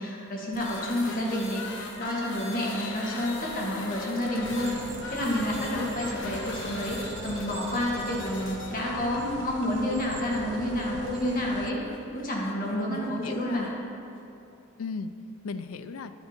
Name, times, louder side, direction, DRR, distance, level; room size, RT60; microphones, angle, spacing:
voice 1, 0.0-1.6 2.0-11.8 12.1-13.7, left 1 dB, 40° left, -4 dB, 1.7 m, -29 dB
sound 1, 0.5-13.7, left 2 dB, 60° left, 0.9 m, -41 dB
Wind instrument woodwind instrument, 2.6-12.5, left 5 dB, 20° left, 0.5 m, -43 dB
sound 2, 4.4-11.7, right 5 dB, 55° right, 0.3 m, -43 dB
voice 2, 12.7-13.7 14.8-15.1 15.4-16.1, left 4 dB, 90° left, 11 dB, 0.4 m, -37 dB
10.5 x 6.9 x 4.4 m, 2.7 s
head